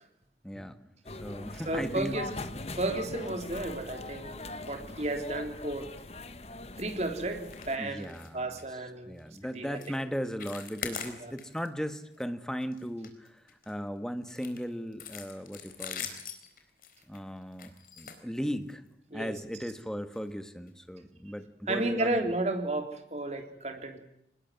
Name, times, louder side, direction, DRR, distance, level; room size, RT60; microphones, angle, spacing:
voice 1, 0.4-0.8 1.1-2.2 7.8-13.4 13.7-16.1 17.1-18.8 19.1-22.1, equal, 5° left, 9 dB, 1.5 m, -37 dB
sound 1, 1.1-7.8, left 2 dB, 35° left, 1.4 m, -42 dB
voice 2, 1.7-2.3 2.8-4.4 4.7-5.9 6.8-9.2 9.6-9.8 11.2-11.3 19.1-19.3 21.7-24.0, right 2 dB, 40° right, 5 dB, 3.5 m, -33 dB
sound 2, 7.4-7.7 8.0-8.3 8.6-8.7 9.2-9.4 9.7-10.0 10.2-11.7 12.0-12.2 12.6-13.7 14.3-18.9 19.6-19.8 20.1-20.2 20.7-20.8, left 7 dB, 50° left, 4.2 m, -42 dB
24.5 x 20.5 x 9.5 m, 0.78 s
head